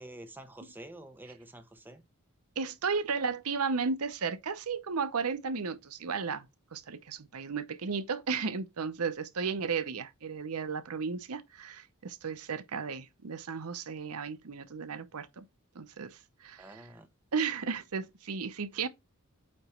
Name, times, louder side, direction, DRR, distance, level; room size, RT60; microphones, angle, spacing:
voice 1, 0.0-2.0 16.6-17.1 18.8-18.9, right 1 dB, 10° right, 1.0 m, -48 dB
voice 2, 2.6-15.4 15.7-16.8 17.3-18.9, right 5 dB, 85° right, 0.8 m, -34 dB
8.7 x 3.0 x 4.3 m
head